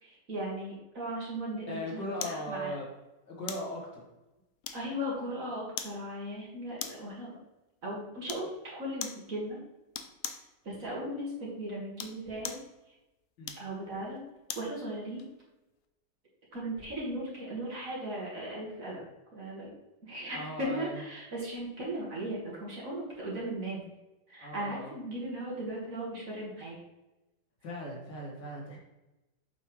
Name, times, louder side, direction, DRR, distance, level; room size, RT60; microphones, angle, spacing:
voice 1, 0.0-2.8 4.7-7.4 7.8-9.6 10.6-12.6 13.6-14.2 14.6-15.2 16.5-19.0 19.3-19.7 20.0-23.8 24.3-26.8, right 1 dB, 50° right, -5 dB, 2.2 m, -37 dB
voice 2, 1.7-2.9 3.3-4.0 13.4-13.5 20.3-21.0 24.4-24.9 27.6-28.8, equal, 85° left, -3 dB, 2.7 m, -38 dB
sound 1, 2.2-2.5 3.5-3.7 4.6-5.1 5.8-6.0 6.8-7.1 8.3-8.5 9.0-9.3 9.9-10.5 11.8-12.7 13.4-14.7 15.2-15.3, left 8 dB, 65° left, 0.8 m, -40 dB
7.8 x 5.5 x 3.2 m, 1.0 s
omnidirectional pair, 1.9 m